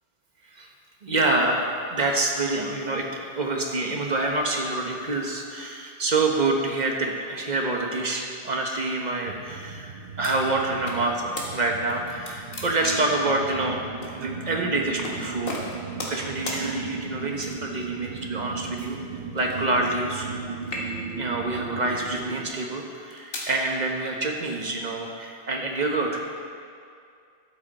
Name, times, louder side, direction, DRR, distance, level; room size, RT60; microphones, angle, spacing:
voice 1, 1.0-1.6 1.9-3.1 3.3-13.8 14.1-15.6 15.9-19.0 19.3-20.3 21.2-26.4, right 2 dB, 45° right, 1 dB, 1.2 m, -27 dB
sound 1, 9.2-22.5, right 5 dB, 75° right, 1.1 m, -36 dB
sound 2, 10.2-11.0 11.4-11.5 11.9-13.2 14.0-14.2 15.0-15.2 15.5-16.2 16.5-16.6 17.4-17.8 18.8-20.4 20.6-21.2 21.9-22.2 22.9-23.5, left 1 dB, 60° left, 1.7 m, -35 dB
12.5 x 7.8 x 4.2 m, 2.3 s
omnidirectional pair, 1.1 m